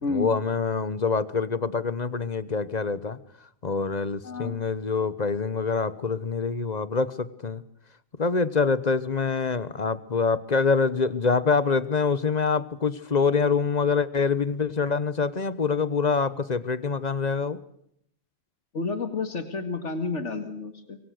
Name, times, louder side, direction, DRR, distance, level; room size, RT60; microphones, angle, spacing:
voice 1, 0.1-3.2 3.6-7.6 8.2-17.6, left 5 dB, 40° left, 16 dB, 1.1 m, -25 dB
voice 2, 4.2-4.6 18.7-21.0, left 4 dB, 90° left, 9 dB, 2.4 m, -30 dB
26.0 x 23.0 x 6.5 m, 0.70 s
omnidirectional pair, 1.2 m